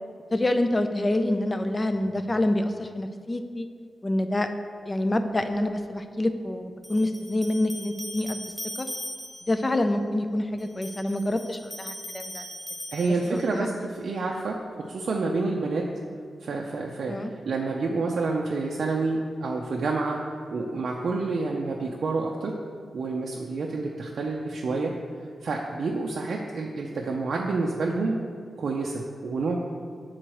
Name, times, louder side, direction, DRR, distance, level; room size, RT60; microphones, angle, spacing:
voice 1, 0.3-3.7 4.0-4.5 4.9-8.4 8.8-8.9 9.5-12.5 13.3-13.7 17.1-17.3, left 1 dB, 20° left, 8 dB, 0.3 m, -27 dB
sound 1, 6.8-9.7 10.6-13.6, equal, ahead, 1.1 m, -39 dB
voice 2, 12.9-15.9 16.4-17.2 17.5-20.2 20.5-22.6 22.9-24.9 25.4-28.2 28.6-29.6, right 3 dB, 60° right, -1 dB, 0.4 m, -28 dB
7.6 x 3.9 x 4.6 m, 2.1 s
wide cardioid pair, 160°, 0 cm